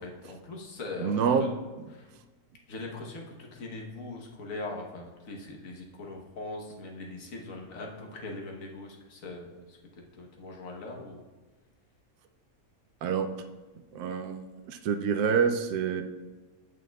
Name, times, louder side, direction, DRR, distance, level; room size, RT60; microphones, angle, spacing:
voice 1, 0.0-1.5 1.9-2.1 2.7-11.2, left 2 dB, 65° left, 1 dB, 1.5 m, -41 dB
voice 2, 1.0-1.5 1.8-1.9 13.0-13.3 13.9-16.0, right 6 dB, 90° right, 7 dB, 1.1 m, -27 dB
15.5 x 5.6 x 2.3 m, 1.2 s
omnidirectional pair, 1.6 m